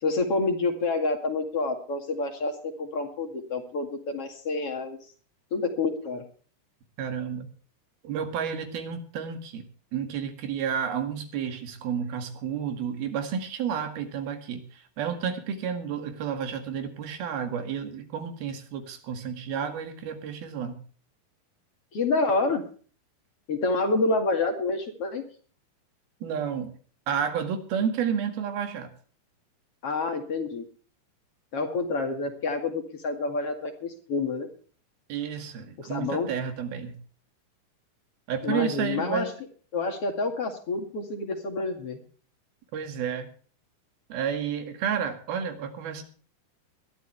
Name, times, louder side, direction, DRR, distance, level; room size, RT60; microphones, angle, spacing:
voice 1, 0.0-5.0 5.5-6.2 21.9-22.6 23.5-25.2 29.8-30.6 31.5-34.5 35.8-36.3 38.4-39.3 39.7-42.0, left 3 dB, 45° left, 5 dB, 2.8 m, -28 dB
voice 2, 7.0-7.5 8.0-9.7 9.9-20.8 26.2-26.7 27.1-28.9 35.1-37.0 38.3-39.3 42.7-43.3 44.1-46.0, right 7 dB, 85° right, 7 dB, 4.0 m, -31 dB
21.0 x 12.5 x 3.4 m, 0.42 s
omnidirectional pair, 4.2 m